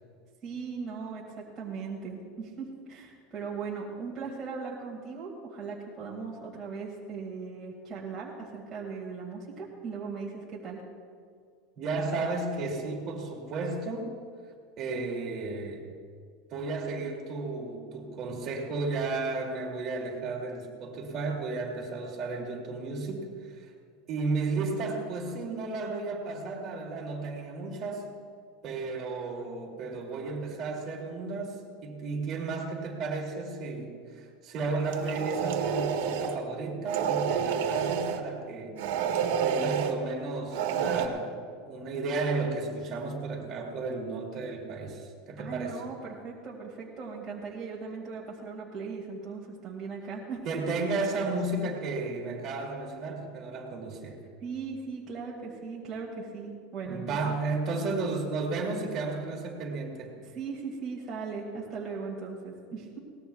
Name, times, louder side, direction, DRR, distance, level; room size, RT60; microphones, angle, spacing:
voice 1, 0.4-10.8 45.4-50.4 54.4-57.2 60.2-63.0, right 5 dB, 15° right, -5 dB, 2.0 m, -38 dB
voice 2, 11.8-14.1 14.8-15.9 16.5-23.7 24.1-28.1 28.6-38.8 39.4-41.3 41.6-45.8 50.4-54.2 56.9-60.1, right 3 dB, 35° right, -1 dB, 2.6 m, -33 dB
sound 1, 34.9-36.4 36.9-38.2 38.8-39.9 40.5-41.1, right 7 dB, 75° right, 1.4 m, -29 dB
22.0 x 18.5 x 2.3 m, 2.2 s
supercardioid pair, 165°, 0 cm